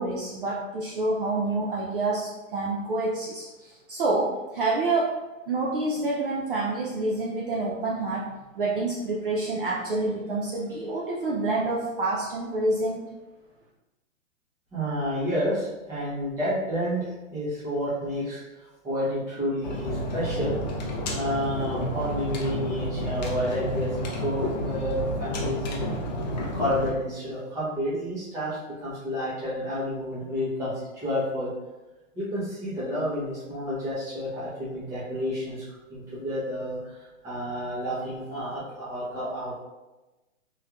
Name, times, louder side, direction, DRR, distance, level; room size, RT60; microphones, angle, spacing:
voice 1, 0.0-5.1 5.5-8.3 8.5-13.0, right 2 dB, 45° right, -4 dB, 0.5 m, -27 dB
voice 2, 14.7-18.4 18.8-20.6 21.1-26.0 26.4-31.5 32.2-35.6 35.9-39.6, equal, 10° right, -10 dB, 0.7 m, -30 dB
sound 1, 19.6-26.9, equal, 35° left, 0.4 m, -30 dB
3.1 x 3.0 x 2.3 m, 1.1 s
hypercardioid pair, 155°, 40 cm